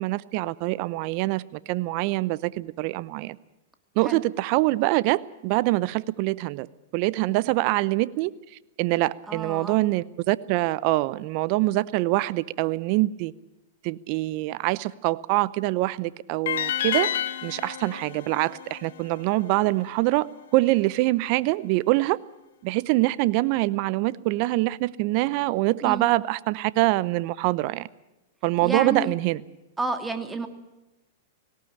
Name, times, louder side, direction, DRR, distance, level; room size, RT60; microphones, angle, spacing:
voice 1, 0.0-3.4 4.0-6.7 6.9-8.3 8.8-13.3 13.8-20.3 20.5-22.2 22.6-27.9 28.4-29.4, right 19 dB, 50° right, 0.7 m, -24 dB
voice 2, 9.3-9.8 25.8-26.1 28.6-29.1 29.8-30.5, right 3 dB, 10° right, 2.5 m, -30 dB
sound 1, 16.5-19.6, left 10 dB, 70° left, 1.2 m, -30 dB
18.5 x 18.0 x 8.8 m
hypercardioid pair, 110°, 0 cm